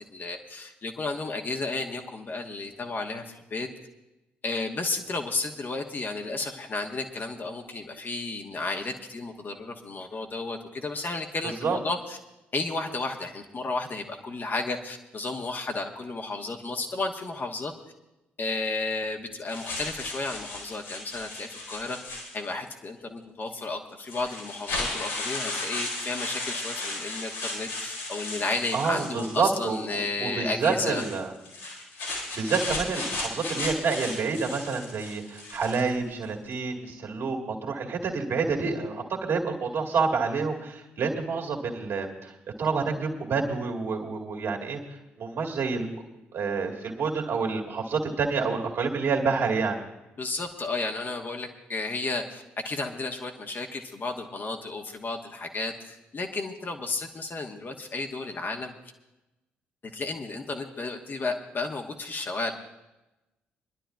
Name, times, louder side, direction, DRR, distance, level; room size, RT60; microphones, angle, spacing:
voice 1, 0.1-3.7 4.4-12.2 12.5-17.7 18.4-31.0 50.2-58.7 59.9-62.5, left 3 dB, 35° left, 3 dB, 1.3 m, -33 dB
sound 1, 19.5-22.7 23.5-23.6 24.1-29.8 30.8-36.0, left 2 dB, 75° left, 2.7 m, -35 dB
voice 2, 28.7-31.3 32.1-42.3 42.6-44.8 45.2-46.0 46.3-49.8, right 4 dB, 50° right, 0 dB, 2.1 m, -28 dB
28.5 x 11.0 x 2.3 m, 0.98 s
figure-of-eight pair, 40°, 5 cm